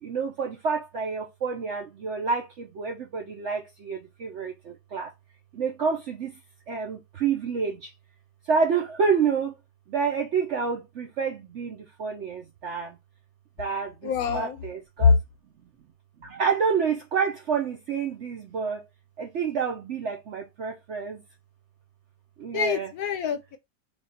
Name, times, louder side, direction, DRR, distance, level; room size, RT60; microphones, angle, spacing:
voice 1, 0.0-5.1 5.5-6.3 6.7-7.9 8.5-9.6 9.9-13.0 13.6-15.1 16.2-18.8 19.2-21.2 22.4-22.9, right 5 dB, 65° right, 0.7 m, -28 dB
voice 2, 14.0-14.6 15.0-15.1 22.5-23.6, left 6 dB, 70° left, 1.0 m, -23 dB
3.5 x 2.4 x 3.9 m
omnidirectional pair, 1.9 m